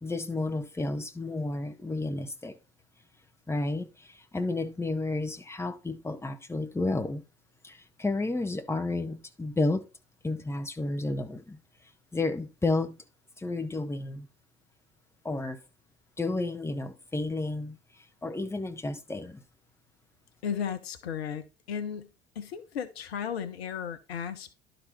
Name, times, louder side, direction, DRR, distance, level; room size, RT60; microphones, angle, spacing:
voice 1, 0.0-2.6 3.5-7.2 7.6-9.8 10.2-11.6 12.1-13.0 13.4-14.3 15.2-15.6 16.2-17.8 18.2-19.4, left 2 dB, 10° left, 1.0 m, -31 dB
voice 2, 20.4-22.1 22.3-24.6, left 8 dB, 75° left, 0.9 m, -35 dB
11.5 x 4.0 x 4.2 m
figure-of-eight pair, 60°, 31 cm